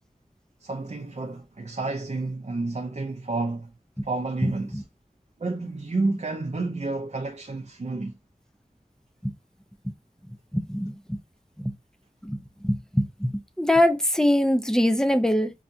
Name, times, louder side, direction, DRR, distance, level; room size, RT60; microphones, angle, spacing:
voice 1, 0.6-3.7 4.0-4.8 5.4-8.1, right 3 dB, 55° right, 0.6 m, -30 dB
voice 2, 10.5-11.2 11.6-11.7 12.2-12.4 12.6-13.3 13.6-15.5, left 1 dB, 5° left, 0.6 m, -23 dB
5.5 x 2.4 x 2.6 m
wide cardioid pair, 50°, 14 cm